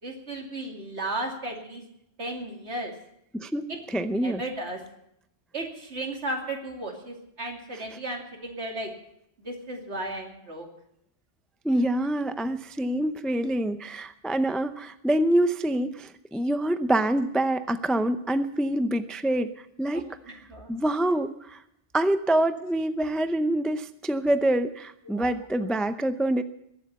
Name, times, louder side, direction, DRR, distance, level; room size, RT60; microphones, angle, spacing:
voice 1, 0.0-1.8 2.2-2.9 3.7-4.8 5.5-8.9 9.4-10.7 19.9-20.7 25.1-25.3, right 1 dB, 70° right, 1 dB, 2.9 m, -35 dB
voice 2, 3.3-4.4 11.6-19.5 19.8-20.0 20.7-21.6 21.9-26.4, right 1 dB, ahead, 10 dB, 0.4 m, -26 dB
22.0 x 7.8 x 6.9 m, 0.77 s
omnidirectional pair, 1.2 m